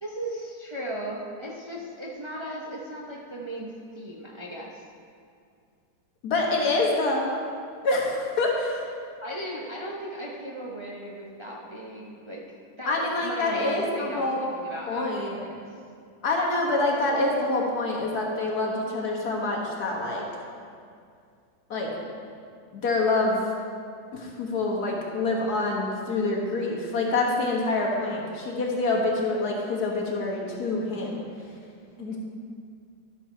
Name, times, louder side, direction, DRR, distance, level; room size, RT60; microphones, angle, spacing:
voice 1, 0.0-4.8 9.2-12.4 12.7-15.8 32.0-32.2, right 1 dB, 35° right, -3 dB, 0.4 m, -37 dB
voice 2, 6.2-7.3 7.8-8.8 12.9-14.4 14.9-15.4 16.2-20.2 21.7-21.9 22.7-23.4 24.1-31.2 32.0-32.2, left 2 dB, 60° left, -2 dB, 1.9 m, -26 dB
12.0 x 7.1 x 4.5 m, 2.3 s
omnidirectional pair, 1.9 m